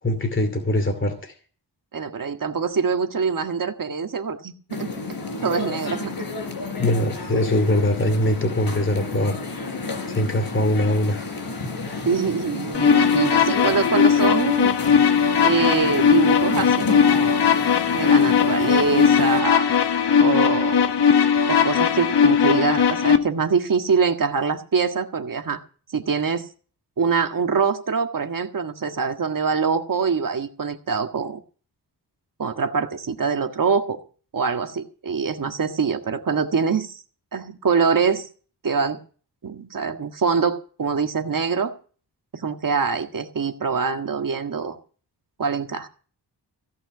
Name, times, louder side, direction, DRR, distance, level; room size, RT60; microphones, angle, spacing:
voice 1, 0.0-1.3 6.8-9.4 10.1-11.3 11.8-12.1, left 1 dB, 30° left, 6 dB, 2.6 m, -22 dB
voice 2, 1.9-4.9 5.4-6.3 12.0-14.8 15.4-17.5 17.9-19.7 20.2-20.9 21.5-25.6 25.9-26.5 27.0-31.4 32.4-34.0 34.3-37.0 37.3-38.3 38.6-39.0 39.4-41.7 42.3-44.8 45.4-45.9, right 5 dB, 50° right, 6 dB, 1.7 m, -24 dB
sound 1, 4.7-19.4, left 4 dB, 60° left, 4.3 m, -32 dB
sound 2, 12.7-23.2, left 7 dB, 80° left, 1.4 m, -18 dB
16.5 x 6.0 x 9.4 m, 0.41 s
wide cardioid pair, 110°, 41 cm